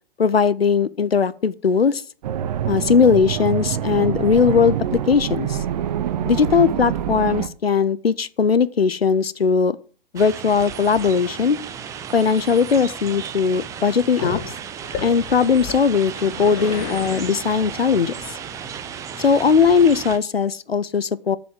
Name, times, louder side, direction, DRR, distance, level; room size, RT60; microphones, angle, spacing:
voice 1, 0.2-2.0 2.7-5.6 6.3-9.8 10.1-11.6 12.1-14.4 15.0-18.4 19.2-21.4, left 6 dB, 85° left, 0.6 m, -19 dB
sound 1, 2.2-7.5, right 10 dB, 45° right, 0.8 m, -25 dB
sound 2, 10.2-20.2, right 8 dB, 10° right, 0.5 m, -34 dB
Growling, 14.2-20.1, left 8 dB, 40° left, 1.8 m, -34 dB
7.6 x 6.9 x 7.5 m
figure-of-eight pair, 110°, 29 cm